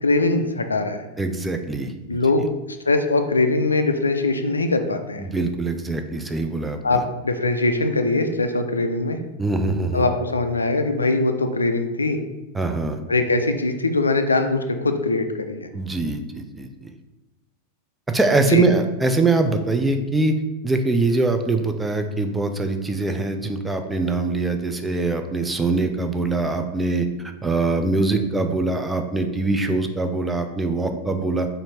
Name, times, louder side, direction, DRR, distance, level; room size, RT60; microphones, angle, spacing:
voice 1, 0.0-1.0 2.1-5.3 6.8-9.2 9.9-12.2 13.1-15.7 18.5-18.7, left 2 dB, 75° left, 7 dB, 0.3 m, -22 dB
voice 2, 1.2-2.2 5.2-7.0 9.4-10.0 12.5-13.0 15.7-16.9 18.1-20.4 20.6-31.5, right 3 dB, 10° right, 6 dB, 0.4 m, -23 dB
4.2 x 2.6 x 4.2 m, 1.0 s
figure-of-eight pair, 90°, 0 cm